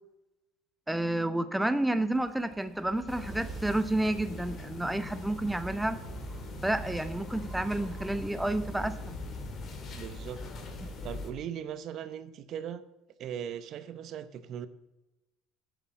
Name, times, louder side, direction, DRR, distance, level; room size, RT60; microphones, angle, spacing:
voice 1, 0.9-6.0 6.6-9.2 10.8-10.9, right 1 dB, 5° right, 11 dB, 0.8 m, -30 dB
sound 1, 1.9-11.0, right 4 dB, 20° right, 2.0 m, -48 dB
sound 2, 3.1-11.3, left 2 dB, 45° left, 2.3 m, -41 dB
voice 2, 9.9-10.4 11.0-12.8 13.2-14.7, right 9 dB, 55° right, 13 dB, 0.8 m, -39 dB
9.1 x 6.8 x 7.5 m, 0.99 s
supercardioid pair, 90°, 0 cm